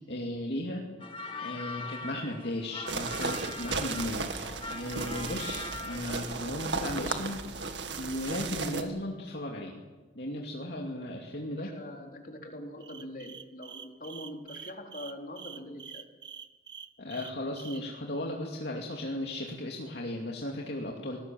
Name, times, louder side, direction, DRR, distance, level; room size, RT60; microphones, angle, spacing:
voice 1, 0.1-0.9 1.4-4.3 4.7-9.8 10.1-11.7 17.0-21.2, left 1 dB, 65° left, -1 dB, 2.6 m, -36 dB
sound 1, 1.0-6.4, left 2 dB, 30° left, 2.0 m, -41 dB
sound 2, 2.9-8.8, right 4 dB, 75° right, 2.1 m, -35 dB
voice 2, 11.5-16.1, left 1 dB, 45° left, 2 dB, 3.9 m, -43 dB
sound 3, 12.8-17.8, right 7 dB, 25° right, 0.9 m, -46 dB
26.0 x 19.5 x 7.7 m, 1.2 s
head